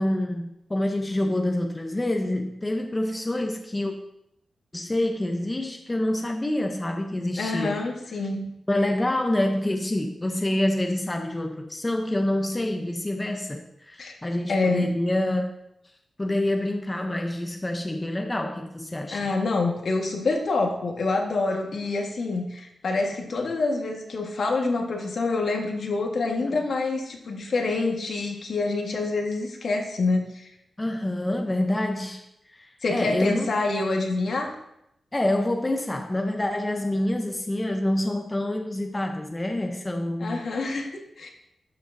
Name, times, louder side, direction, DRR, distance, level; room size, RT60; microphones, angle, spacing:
voice 1, 0.0-3.9 4.7-7.8 8.7-15.4 16.2-19.3 30.8-32.2 32.5-33.5 35.1-40.4, left 1 dB, 15° left, 4 dB, 0.6 m, -27 dB
voice 2, 7.4-8.5 14.0-14.2 14.5-14.9 19.1-30.5 32.8-34.5 40.2-40.9 41.2-41.3, left 3 dB, 70° left, 1 dB, 1.4 m, -26 dB
12.0 x 6.5 x 2.6 m, 0.80 s
wide cardioid pair, 115°, 0 cm